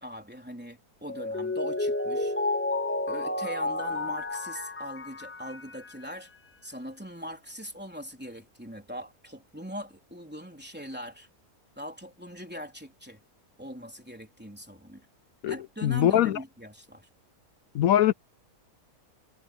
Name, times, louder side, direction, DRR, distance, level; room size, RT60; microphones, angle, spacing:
voice 1, 0.0-2.3 3.1-6.3 6.6-11.3 11.8-13.2 13.6-15.0 15.5-17.1, equal, 5° right, 3.6 m, -41 dB
Mallet percussion, 1.1-6.0, left 2 dB, 10° left, 0.9 m, -31 dB
voice 2, 15.8-16.4 17.7-18.1, left 11 dB, 70° left, 0.9 m, -22 dB
omnidirectional pair, 1.7 m